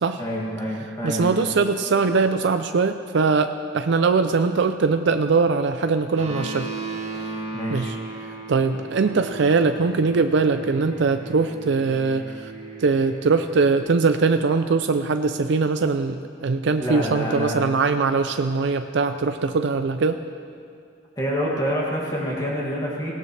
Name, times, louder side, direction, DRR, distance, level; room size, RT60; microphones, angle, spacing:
voice 1, 0.2-1.4 7.5-7.9 16.8-17.5 21.2-23.1, equal, 20° left, -5 dB, 2.3 m, -27 dB
voice 2, 1.0-6.7 7.7-8.0 8.5-12.5 12.8-20.2, right 4 dB, 65° right, 9 dB, 0.5 m, -21 dB
sound 1, 6.2-13.8, right 3 dB, 35° right, 1.8 m, -36 dB
18.5 x 17.5 x 3.3 m, 2.4 s
head